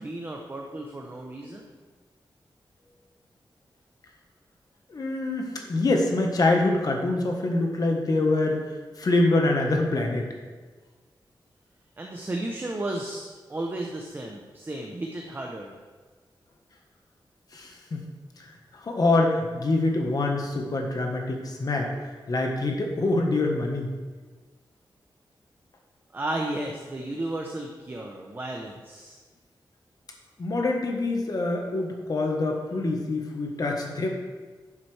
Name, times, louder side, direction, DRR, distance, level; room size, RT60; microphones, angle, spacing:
voice 1, 0.0-1.7 12.0-15.8 26.1-29.2, right 1 dB, 25° right, 0 dB, 0.7 m, -33 dB
voice 2, 4.9-8.6 9.0-10.3 17.5-18.0 18.4-18.5 18.8-21.9 22.3-23.9 30.4-34.1, left 2 dB, 50° left, 1 dB, 1.3 m, -25 dB
10.5 x 7.4 x 3.3 m, 1.4 s
wide cardioid pair, 165°, 8 cm